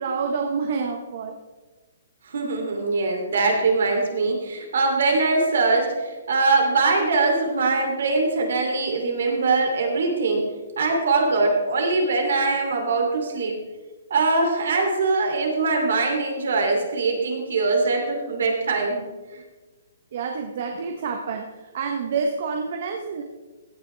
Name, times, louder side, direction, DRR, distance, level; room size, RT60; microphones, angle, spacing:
voice 1, 0.0-1.4 20.1-23.2, right 5 dB, 45° right, 4 dB, 1.0 m, -28 dB
voice 2, 2.2-10.4 10.8-13.6 14.1-19.1 19.3-19.4, right 3 dB, 70° right, 2 dB, 3.0 m, -22 dB
16.0 x 9.5 x 3.4 m, 1.3 s
hypercardioid pair, 175°, 0 cm